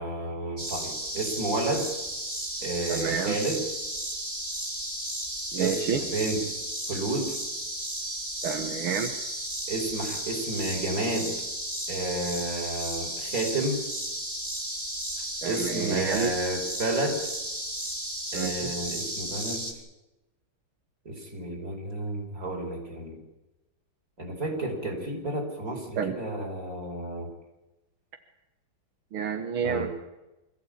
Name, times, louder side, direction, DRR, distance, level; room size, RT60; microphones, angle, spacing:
voice 1, 0.0-1.9 2.6-3.6 5.6-6.4 6.9-7.4 9.7-11.4 11.9-13.8 15.5-17.2 18.3-19.7 21.1-23.2 24.2-27.3 29.6-29.9, right 2 dB, 40° right, 1 dB, 5.6 m, -31 dB
sound 1, 0.6-19.7, right 1 dB, 25° right, 3.5 m, -34 dB
voice 2, 2.9-3.4 5.5-6.0 8.4-9.2 15.4-16.3 18.3-18.7 26.0-26.2 29.1-29.9, right 7 dB, 85° right, 5 dB, 2.2 m, -29 dB
25.5 x 15.0 x 8.7 m, 1.0 s
omnidirectional pair, 2.3 m